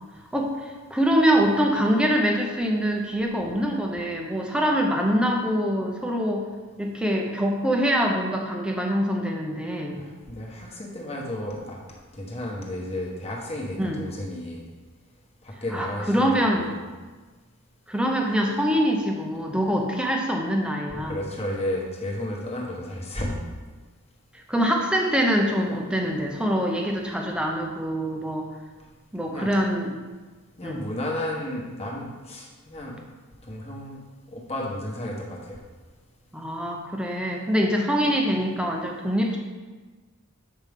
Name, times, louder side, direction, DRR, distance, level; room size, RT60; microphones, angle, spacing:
voice 1, 0.3-6.4 6.8-10.0 13.8-14.0 15.7-16.7 17.9-21.2 24.5-28.5 29.1-30.0 30.6-30.9 36.3-39.4, equal, 5° right, 1 dB, 0.7 m, -24 dB
voice 2, 10.0-11.8 12.1-14.6 15.4-16.8 20.9-23.3 29.3-29.6 30.6-33.0 33.5-34.0 34.3-35.6, left 1 dB, 30° left, -3 dB, 1.2 m, -33 dB
7.3 x 5.2 x 3.6 m, 1.3 s
head